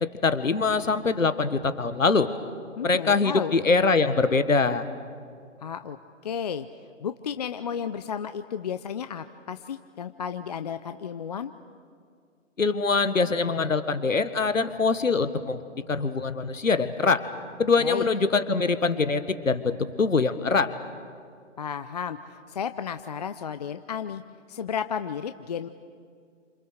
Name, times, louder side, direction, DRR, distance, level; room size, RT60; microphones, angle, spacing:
voice 1, 0.0-2.3 2.8-4.8 12.6-15.6 15.9-17.2 17.6-20.7, left 4 dB, 85° left, 12 dB, 1.6 m, -23 dB
voice 2, 2.8-3.5 5.6-6.0 6.2-6.7 7.0-11.5 17.8-18.1 21.6-24.2 24.5-25.7, left 7 dB, 35° left, 10 dB, 0.6 m, -33 dB
29.5 x 27.5 x 6.5 m, 2.2 s
figure-of-eight pair, 140°, 38 cm